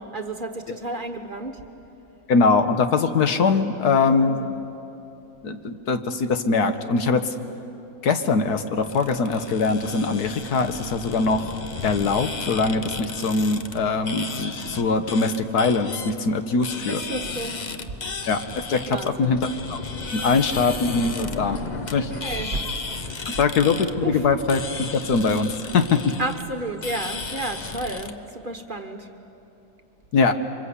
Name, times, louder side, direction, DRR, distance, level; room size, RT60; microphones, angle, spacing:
voice 1, 0.0-1.6 4.2-4.6 16.8-17.6 18.9-19.4 22.0-22.7 23.0-23.5 24.0-24.3 26.2-29.1, right 2 dB, 35° right, 5 dB, 1.3 m, -32 dB
voice 2, 2.3-4.4 5.4-7.3 8.0-11.5 11.8-17.0 18.3-18.4 18.7-19.4 19.7-19.8 20.1-21.6 21.9-22.1 23.4-26.0 30.1-30.3, left 4 dB, 75° left, 8 dB, 1.7 m, -22 dB
sound 1, 8.8-28.1, left 4 dB, 35° left, 0.9 m, -34 dB
27.5 x 25.0 x 8.3 m, 2.9 s
omnidirectional pair, 1.7 m